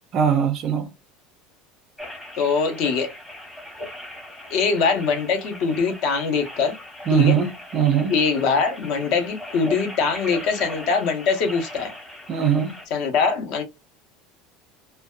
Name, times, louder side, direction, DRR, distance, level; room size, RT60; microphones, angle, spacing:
voice 1, 0.1-0.9 7.1-8.1 12.3-12.7, right 8 dB, 30° right, 0.4 m, -20 dB
sound 1, 2.0-12.8, left 1 dB, 5° left, 0.9 m, -39 dB
voice 2, 2.4-3.1 4.5-6.8 7.1-7.4 8.1-11.9 12.9-13.6, left 5 dB, 50° left, 0.6 m, -22 dB
2.6 x 2.1 x 2.3 m
cardioid pair, 175°, 0 cm